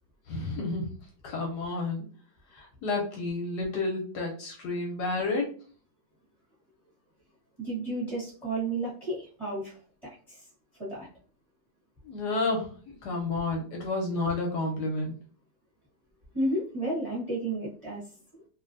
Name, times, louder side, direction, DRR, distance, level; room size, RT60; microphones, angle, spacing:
voice 1, 0.3-0.9 1.2-2.0 2.5-5.5 12.0-12.7 13.0-15.1, left 3 dB, 70° left, 0 dB, 1.1 m, -30 dB
voice 2, 7.6-10.5 10.8-11.1 16.3-18.1 18.3-18.4, right 1 dB, 20° right, -7 dB, 0.8 m, -32 dB
3.0 x 2.6 x 2.5 m, 0.42 s
omnidirectional pair, 2.0 m